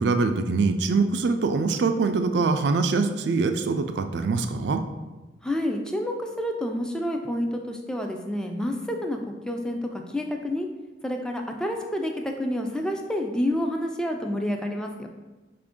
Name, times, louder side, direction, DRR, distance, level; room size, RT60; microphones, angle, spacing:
voice 1, 0.0-4.8, right 4 dB, 70° right, 8 dB, 0.4 m, -23 dB
voice 2, 5.4-9.2 9.5-10.7 11.0-15.1, left 1 dB, 5° left, 3 dB, 0.3 m, -29 dB
4.9 x 2.5 x 3.6 m, 1.2 s
head